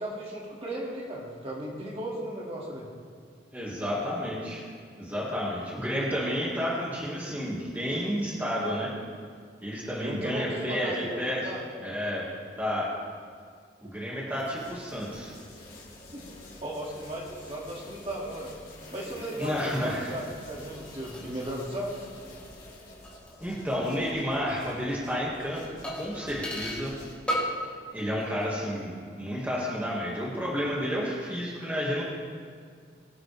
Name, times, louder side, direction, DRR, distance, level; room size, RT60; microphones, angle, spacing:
voice 1, 0.0-2.9 9.9-11.6 16.1-16.2 16.6-18.5 18.9-22.1, right 1 dB, 30° right, -4 dB, 2.3 m, -36 dB
voice 2, 3.5-4.6 5.0-8.9 9.6-11.4 11.8-12.3 12.6-12.9 13.8-15.3 19.4-20.1 23.4-25.6 26.0-26.9 27.9-32.0, equal, 10° right, -6 dB, 1.9 m, -31 dB
sound 1, 14.3-27.1, left 2 dB, 50° left, 3.7 m, -49 dB
sound 2, 20.7-24.1 24.3-24.4 25.8-26.9 27.3-27.7 28.0-28.5 28.8-28.9, equal, 5° left, 3.0 m, -37 dB
22.5 x 7.8 x 3.4 m, 2.1 s
head